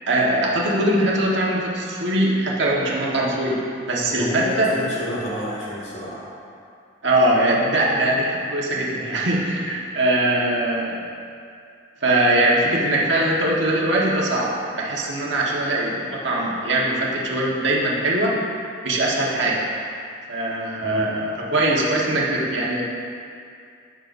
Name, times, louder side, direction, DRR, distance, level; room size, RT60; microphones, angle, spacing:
voice 1, 0.1-4.7 7.0-11.0 12.0-18.3 18.8-19.6 20.3-22.8, right 1 dB, 85° right, -4 dB, 1.5 m, -21 dB
voice 2, 4.1-6.3 20.8-21.1, left 1 dB, 40° left, -6 dB, 2.4 m, -30 dB
15.5 x 6.4 x 2.7 m, 2.4 s
head